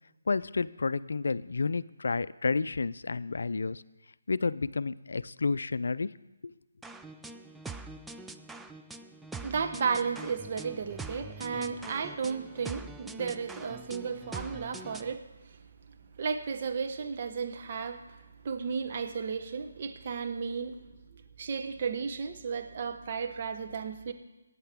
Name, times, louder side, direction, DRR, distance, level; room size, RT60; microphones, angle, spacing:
voice 1, 0.3-3.8 4.3-6.1 6.4-6.5, left 4 dB, 65° left, 17 dB, 0.4 m, -30 dB
sound 1, 6.8-15.2, right 3 dB, 5° right, 0.3 m, -44 dB
voice 2, 9.4-15.6 16.2-20.8 21.1-24.1, right 5 dB, 40° right, 7 dB, 0.9 m, -34 dB
19.0 x 9.0 x 3.5 m, 1.0 s
figure-of-eight pair, 150°, 0 cm